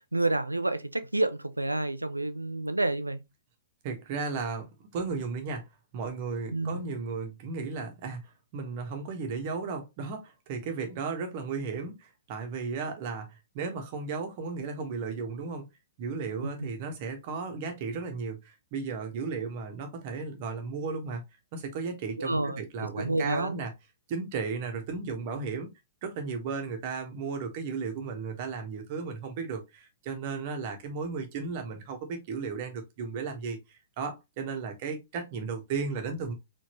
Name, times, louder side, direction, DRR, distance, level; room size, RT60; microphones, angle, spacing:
voice 1, 0.1-3.2 6.5-6.8 16.4-16.7 22.2-23.6, right 2 dB, 85° right, 0.6 m, -29 dB
voice 2, 3.8-5.7 5.9-8.2 8.5-15.6 16.0-21.2 21.5-23.7 24.1-25.7 26.0-36.3, right 4 dB, 40° right, 1.5 m, -35 dB
4.4 x 3.6 x 3.1 m
figure-of-eight pair, 115°, 0 cm